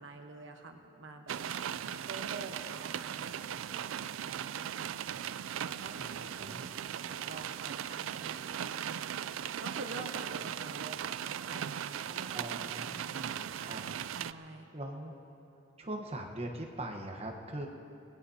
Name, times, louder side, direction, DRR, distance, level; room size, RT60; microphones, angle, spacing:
voice 1, 0.0-5.0 5.6-6.7 7.0-9.1 9.6-13.7 14.1-14.6, right 3 dB, 70° right, 4 dB, 1.1 m, -47 dB
sound 1, 1.3-14.3, right 9 dB, 85° right, 0.4 m, -38 dB
voice 2, 6.0-6.6 12.3-13.8 14.7-15.1 15.8-17.7, right 1 dB, 30° right, 2 dB, 1.1 m, -41 dB
26.0 x 19.0 x 2.8 m, 2.8 s
head